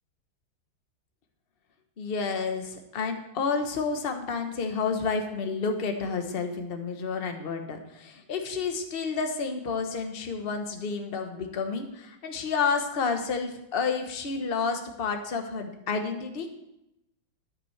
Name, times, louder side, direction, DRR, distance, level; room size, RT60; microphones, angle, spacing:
voice 1, 2.0-16.5, left 5 dB, 35° left, 5 dB, 1.1 m, -30 dB
13.5 x 10.0 x 3.3 m, 0.84 s
omnidirectional pair, 2.1 m